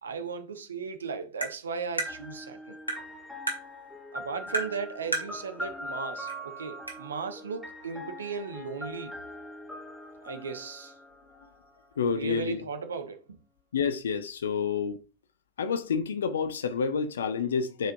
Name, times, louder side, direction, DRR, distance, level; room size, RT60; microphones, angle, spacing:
voice 1, 0.0-2.8 4.1-9.1 10.2-10.9 12.2-13.4, right 5 dB, 70° right, 1.1 m, -36 dB
Tap, 1.4-1.5 2.0-2.1 2.9-3.0 3.5-3.6 4.5-4.7 5.1-5.3 6.3-6.4 6.9-7.0, right 1 dB, 85° left, 1.9 m, -30 dB
sound 1, 2.0-11.8, left 1 dB, 5° left, 2.0 m, -42 dB
voice 2, 12.0-12.6 13.7-15.0 15.6-17.9, left 6 dB, 65° left, 0.8 m, -29 dB
11.5 x 5.1 x 2.7 m
figure-of-eight pair, 90°, 0 cm